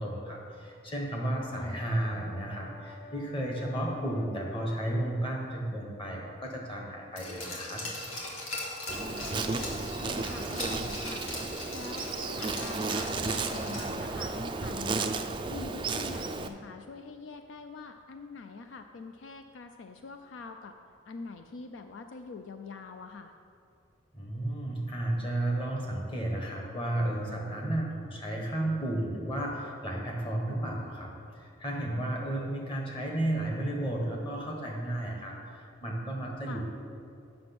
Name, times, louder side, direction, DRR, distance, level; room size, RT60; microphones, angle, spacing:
voice 1, 0.0-7.8 24.1-31.1 31.3-36.6, right 1 dB, 25° left, -1 dB, 1.3 m, -33 dB
Brass instrument, 1.1-5.4, left 5 dB, 45° left, 1.0 m, -52 dB
voice 2, 1.5-2.0 9.0-11.3 11.7-15.1 15.5-20.7 21.1-23.3 36.5-36.6, left 4 dB, 70° left, 6 dB, 0.4 m, -44 dB
Glass, 7.2-14.1 14.4-14.5, left 2 dB, 85° left, 1.9 m, -40 dB
Insect, 8.9-16.5, right 3 dB, 25° right, 0.3 m, -33 dB
7.8 x 6.0 x 6.0 m, 2.5 s
head